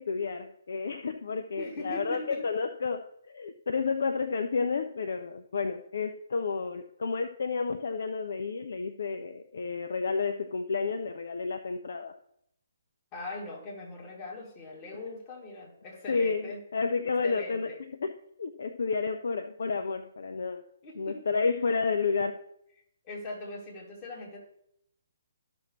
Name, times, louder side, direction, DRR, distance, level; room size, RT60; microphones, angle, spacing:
voice 1, 0.0-12.1 16.1-17.7 18.0-18.1 18.4-20.6 21.0-22.4, left 4 dB, 55° left, 8 dB, 0.5 m, -31 dB
voice 2, 1.5-2.4 13.1-16.6 17.2-17.8 20.8-21.5 23.0-24.4, left 2 dB, 25° left, -2 dB, 2.3 m, -41 dB
13.0 x 6.1 x 3.0 m, 0.73 s
figure-of-eight pair, 135°, 0 cm